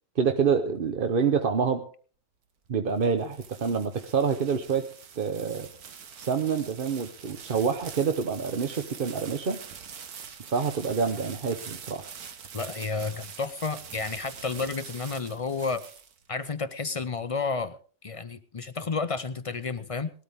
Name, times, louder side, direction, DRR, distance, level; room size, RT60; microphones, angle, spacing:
voice 1, 0.2-1.8 2.7-4.9 5.2-5.7 6.2-9.6 10.4-12.1, right 6 dB, 45° right, 6 dB, 0.9 m, -27 dB
sound 1, 2.7-16.5, right 7 dB, 85° right, 1.7 m, -44 dB
voice 2, 12.5-15.8 16.3-20.1, left 4 dB, 50° left, 13 dB, 0.4 m, -31 dB
19.0 x 13.0 x 3.6 m, 0.41 s
omnidirectional pair, 1.6 m